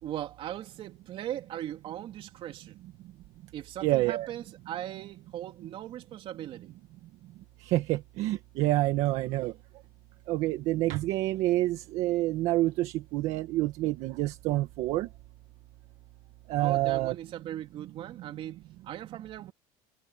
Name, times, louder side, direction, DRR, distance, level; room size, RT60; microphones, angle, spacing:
voice 1, 0.0-2.8 3.5-6.8 16.6-19.5, right 12 dB, 45° right, 3.2 m, -39 dB
voice 2, 3.8-4.3 7.7-9.5 10.3-15.1 16.5-17.1, right 16 dB, 60° right, 1.7 m, -27 dB
cardioid pair, 155°, 13 cm